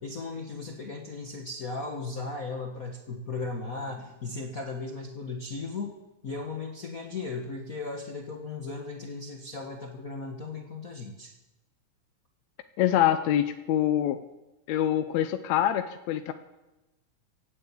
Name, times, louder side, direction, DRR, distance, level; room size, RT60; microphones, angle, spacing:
voice 1, 0.0-6.0 6.2-11.3, left 3 dB, 50° left, 1 dB, 1.1 m, -36 dB
voice 2, 12.8-14.2 14.7-16.3, left 11 dB, 80° left, 8 dB, 1.9 m, -25 dB
17.0 x 8.7 x 8.2 m, 1.0 s
omnidirectional pair, 3.3 m